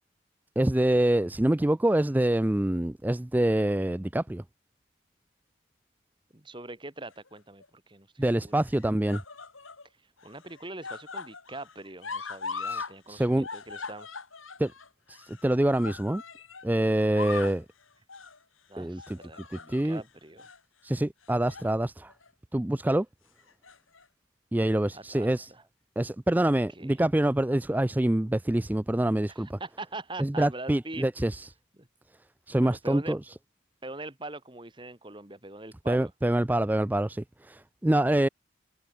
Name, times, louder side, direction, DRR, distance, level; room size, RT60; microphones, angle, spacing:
voice 1, 0.6-4.4 8.2-9.2 12.6-13.5 14.6-14.7 15.1-16.2 16.6-17.6 18.8-19.2 19.5-20.0 20.8-22.1 22.5-23.1 24.5-25.5 26.0-29.6 30.2-31.5 32.5-33.3 35.9-38.3, right 1 dB, 10° right, 0.3 m, -26 dB
voice 2, 6.3-8.5 10.2-14.1 18.7-20.5 24.9-25.6 26.5-27.0 29.3-31.1 31.8-31.9 32.6-33.2 33.8-36.1, right 2 dB, 25° right, 2.3 m, -43 dB
sound 1, 7.1-7.7 8.6-9.8 10.2-12.9 13.2-16.7 17.0-17.6 18.1-18.4 19.0-20.0 20.4-20.6 21.2-21.7 22.1-22.3 23.4-24.0 24.9-25.0, left 4 dB, 90° left, 6.2 m, -40 dB
head